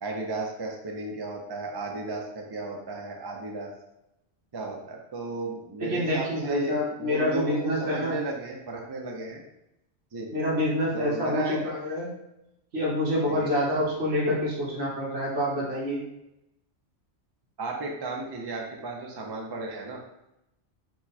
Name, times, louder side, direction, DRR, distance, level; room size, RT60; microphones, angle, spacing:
voice 1, 0.0-3.7 4.5-9.4 10.1-10.3 10.9-11.6 13.3-13.6 17.6-20.0, right 2 dB, 35° right, 0 dB, 0.4 m, -34 dB
voice 2, 5.8-8.2 10.3-12.1 12.7-16.0, left 1 dB, 60° right, -5 dB, 1.5 m, -27 dB
4.6 x 2.2 x 4.2 m, 0.86 s
omnidirectional pair, 1.2 m